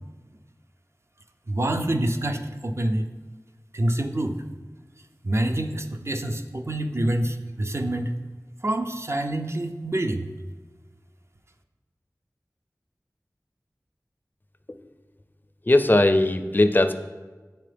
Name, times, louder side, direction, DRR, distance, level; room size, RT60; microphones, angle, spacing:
voice 1, 1.5-3.1 3.7-4.4 5.2-8.1 8.6-10.3, right 1 dB, 45° right, 6 dB, 0.5 m, -26 dB
voice 2, 15.7-16.9, left 1 dB, 30° left, 8 dB, 0.4 m, -19 dB
7.5 x 3.8 x 3.4 m, 1.4 s
wide cardioid pair, 40°, 6 cm